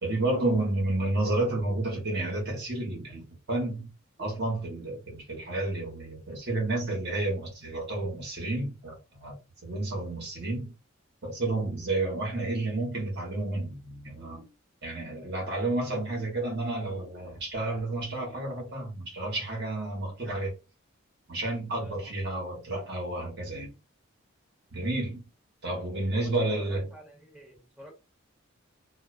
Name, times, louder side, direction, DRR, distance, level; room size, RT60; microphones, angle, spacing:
voice 1, 0.0-3.9 4.2-9.3 9.6-10.7 11.2-14.4 14.8-20.6 21.3-23.7 24.7-25.2 25.6-26.9, right 2 dB, 55° right, 1.1 m, -31 dB
voice 2, 21.8-22.1 25.6-25.7 26.1-27.9, equal, 5° right, 1.0 m, -49 dB
2.4 x 2.2 x 2.4 m
head